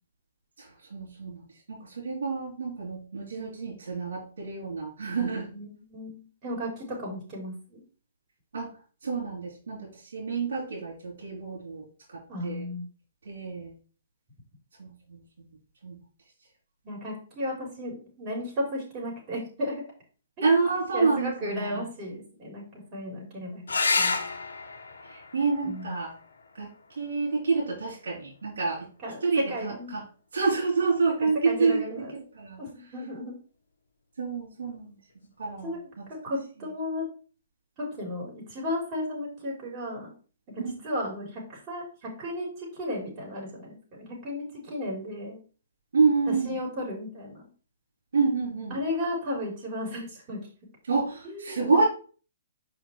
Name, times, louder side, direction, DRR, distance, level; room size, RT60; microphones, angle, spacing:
voice 1, 0.6-5.5 8.5-8.7 9.0-12.7 13.2-13.7 14.8-15.5 15.8-16.0 20.4-21.9 25.0-26.1 26.5-28.9 29.2-30.0 30.3-32.6 34.2-35.0 35.4-36.1 40.6-40.8 45.9-46.6 48.1-48.8 50.8-51.9, right 4 dB, 75° right, -3 dB, 3.0 m, -28 dB
voice 2, 5.4-7.8 12.3-12.9 16.8-19.8 20.4-20.5 20.9-23.6 23.9-24.1 25.6-25.9 29.0-29.9 31.4-32.1 32.6-33.3 35.6-35.9 36.2-37.0 37.8-40.1 40.8-45.4 46.3-47.4 48.7-50.4 51.3-51.9, left 1 dB, 30° right, -2 dB, 3.9 m, -34 dB
sound 1, 23.7-28.7 30.6-31.2 34.7-34.8 35.1-35.2, left 4 dB, 85° left, 1.1 m, -32 dB
5.5 x 5.1 x 4.6 m, 0.38 s
hypercardioid pair, 135°, 0 cm